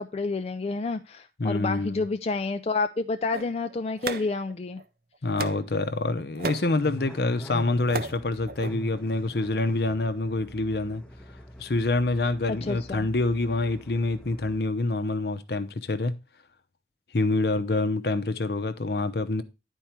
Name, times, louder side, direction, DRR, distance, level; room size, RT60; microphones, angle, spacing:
voice 1, 0.0-4.8 12.5-13.1, left 3 dB, 35° left, 0.4 m, -29 dB
voice 2, 1.4-2.0 5.2-11.0 11.6-16.1 17.1-19.4, left 2 dB, 65° left, 0.7 m, -26 dB
sound 1, 3.3-4.8 5.3-5.7 6.2-6.7 7.5-8.2 8.5-8.7, right 4 dB, 55° right, 0.6 m, -34 dB
sound 2, 6.7-14.6, equal, 5° left, 0.7 m, -42 dB
10.5 x 4.6 x 4.4 m
head